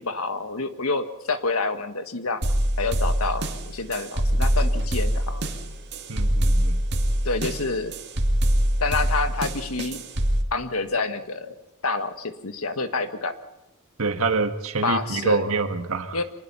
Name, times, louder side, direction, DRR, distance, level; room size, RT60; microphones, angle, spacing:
voice 1, 0.0-2.4 2.8-5.4 7.2-7.9 8.8-10.0 10.5-11.5 11.8-13.3 14.8-15.4 16.1-16.2, left 3 dB, 90° left, 8 dB, 1.6 m, -28 dB
sound 1, 2.4-10.4, equal, 55° right, 2.2 m, -24 dB
voice 2, 6.1-6.8 14.0-16.2, right 4 dB, 75° right, 7 dB, 1.6 m, -26 dB
25.0 x 20.0 x 5.7 m, 0.88 s
head